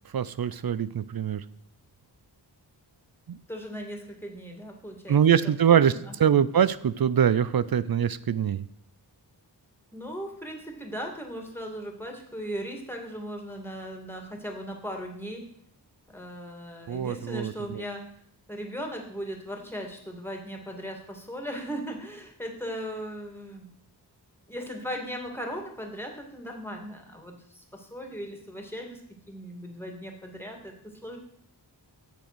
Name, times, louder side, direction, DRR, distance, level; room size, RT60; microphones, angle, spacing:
voice 1, 0.1-1.4 3.3-3.4 5.1-5.9 6.2-8.7 16.9-17.8, right 8 dB, 55° right, 16 dB, 0.5 m, -23 dB
voice 2, 3.5-5.2 5.7-6.4 9.9-15.5 16.1-18.0 18.5-23.7 24.5-29.0 29.3-31.2, equal, 5° left, 2 dB, 2.6 m, -38 dB
8.4 x 6.4 x 6.2 m, 0.66 s
cardioid pair, 40°, 43 cm